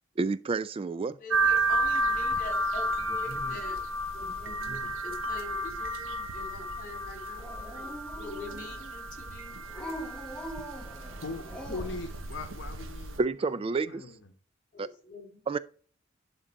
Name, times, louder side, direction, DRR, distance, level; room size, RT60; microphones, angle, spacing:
voice 1, 0.2-1.2 13.2-14.0 14.8-14.9 15.5-15.6, right 4 dB, 30° right, 0.3 m, -29 dB
voice 2, 1.2-3.8 4.1-9.6 14.7-15.4, left 3 dB, 45° left, 2.5 m, -44 dB
sound 1, 1.3-13.2, right 1 dB, 85° right, 1.1 m, -32 dB
voice 3, 3.0-3.6 4.3-4.9 11.2-13.6 13.9-14.2, left 3 dB, 65° left, 1.0 m, -41 dB
Dog, 7.4-8.9 9.7-12.1, equal, 5° left, 1.0 m, -42 dB
11.0 x 3.8 x 4.5 m
head